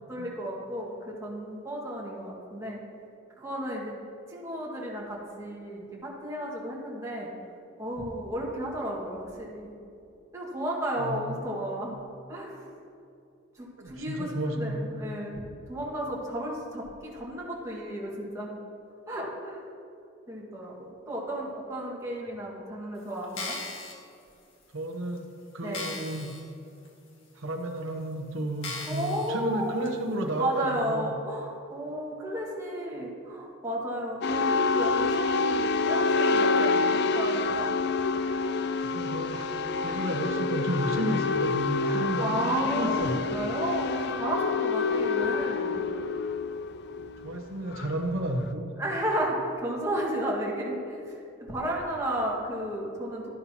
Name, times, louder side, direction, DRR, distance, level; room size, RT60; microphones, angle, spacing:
voice 1, 0.1-2.8 3.4-3.9 4.3-7.3 7.8-9.7 10.3-12.0 12.3-12.6 13.6-15.4 15.7-18.6 19.1-19.6 20.3-23.6 25.6-25.9 28.9-29.7 30.4-37.7 41.8-45.8 48.8-53.3, right 1 dB, 15° right, -4 dB, 1.8 m, -33 dB
voice 2, 11.0-11.4 13.8-15.0 24.7-25.3 25.5-26.3 27.3-31.1 38.1-38.2 38.8-39.5 39.8-43.3 47.2-48.7, right 1 dB, 80° right, 2 dB, 0.9 m, -32 dB
sound 1, 23.2-23.9 24.6-24.7 25.2-25.3 25.7-26.4 26.8-26.9 27.7-27.8 28.6-29.3 29.8-29.9, left 3 dB, 75° left, 1.7 m, -37 dB
sound 2, 34.2-48.5, left 4 dB, 55° left, 0.4 m, -27 dB
12.5 x 11.0 x 2.9 m, 2.6 s
head